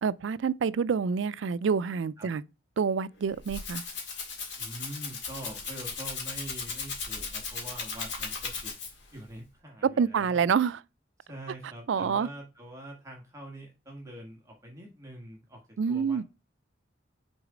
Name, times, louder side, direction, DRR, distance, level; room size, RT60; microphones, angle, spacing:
voice 1, 0.0-2.4 2.8-3.8 9.8-10.8 11.9-12.3 15.8-16.2, right 6 dB, 75° right, 0.4 m, -27 dB
Rattle (instrument), 3.2-9.1, left 4 dB, 70° left, 1.8 m, -37 dB
voice 2, 4.6-10.4 11.3-16.2, right 1 dB, 15° right, 1.6 m, -44 dB
6.2 x 4.1 x 4.9 m
head